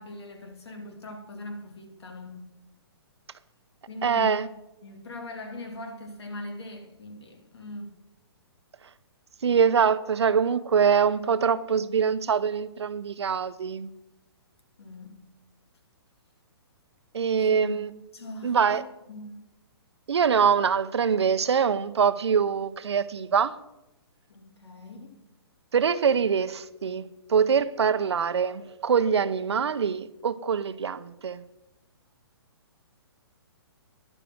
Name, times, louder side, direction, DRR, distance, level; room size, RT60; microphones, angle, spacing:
voice 1, 0.0-2.5 3.9-4.5 4.8-7.9 14.8-15.2 17.4-17.9 18.1-18.8 19.1-19.4 24.3-25.3, left 1 dB, 75° left, 2.4 m, -40 dB
voice 2, 4.0-4.5 9.4-13.9 17.1-17.9 18.4-18.8 20.1-23.5 25.7-31.4, right 6 dB, 85° right, 0.7 m, -24 dB
10.5 x 7.0 x 6.2 m
hypercardioid pair, 150°, 14 cm